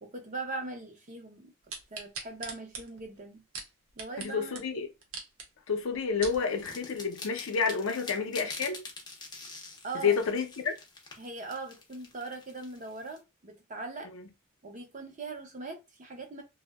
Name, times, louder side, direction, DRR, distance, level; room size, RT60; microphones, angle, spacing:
voice 1, 0.0-1.5 1.9-3.4 4.0-4.6 9.8-10.2 11.2-14.1 14.6-16.4, right 3 dB, 35° right, 0.6 m, -40 dB
sound 1, 1.7-4.3 4.5-4.6 5.0-5.5 5.9-6.4 7.0-7.1, right 4 dB, 85° right, 0.7 m, -41 dB
voice 2, 4.2-4.9 5.7-8.8 10.0-10.7 14.1-14.2, left 5 dB, 65° left, 0.5 m, -29 dB
sound 2, 6.3-13.2, left 3 dB, 20° left, 0.5 m, -46 dB
2.6 x 2.1 x 2.2 m
head